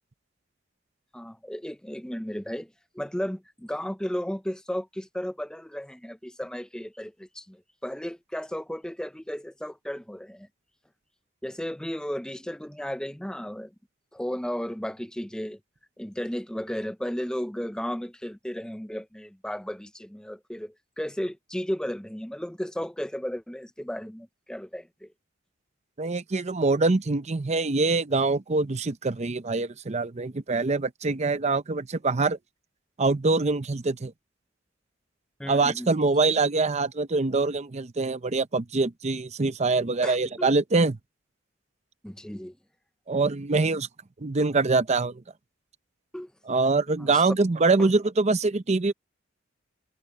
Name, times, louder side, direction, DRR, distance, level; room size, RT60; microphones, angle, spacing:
voice 1, 1.1-2.7 2.9-10.5 11.4-13.7 14.1-15.6 16.0-25.1 35.4-35.9 40.0-40.5 42.0-42.6 46.1-46.3 47.0-47.2 47.8-47.9, equal, 5° left, 0.6 m, -34 dB
voice 2, 26.0-32.4 33.0-34.1 35.5-41.0 43.1-43.9 44.2-45.1 46.5-48.9, right 3 dB, 35° right, 0.7 m, -24 dB
head